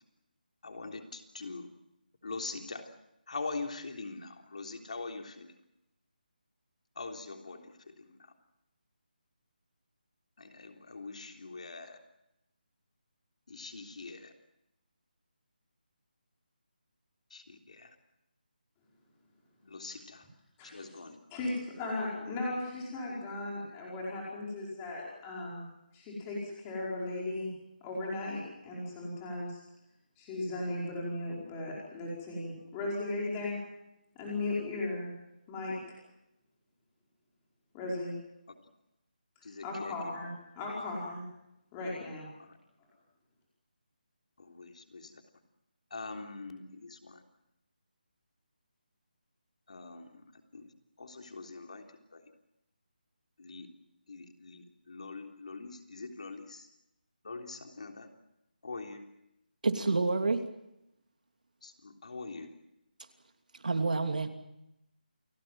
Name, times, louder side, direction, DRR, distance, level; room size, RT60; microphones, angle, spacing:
voice 1, 0.6-1.7 2.2-2.9 3.3-5.5 6.9-8.2 10.4-12.0 13.5-14.3 17.3-17.9 19.6-20.3 20.7-21.2 39.4-40.1 42.4-42.6 44.4-45.2 45.9-47.2 49.7-50.2 50.5-50.6 51.0-51.9 52.1-52.2 53.4-53.7 54.1-56.7 57.2-58.1 58.6-59.1 61.6-62.5, left 3 dB, 50° left, 4 dB, 3.5 m, -43 dB
voice 2, 20.6-20.9 21.3-25.7 25.9-27.5 27.8-29.6 30.2-33.6 34.2-35.1 35.5-35.8 37.7-38.1 39.6-41.2 41.7-42.3, left 2 dB, 10° left, -4 dB, 5.1 m, -36 dB
voice 3, 59.6-60.4 63.6-64.3, right 3 dB, 60° right, 6 dB, 2.9 m, -28 dB
29.5 x 17.5 x 7.7 m, 0.86 s
figure-of-eight pair, 180°, 5 cm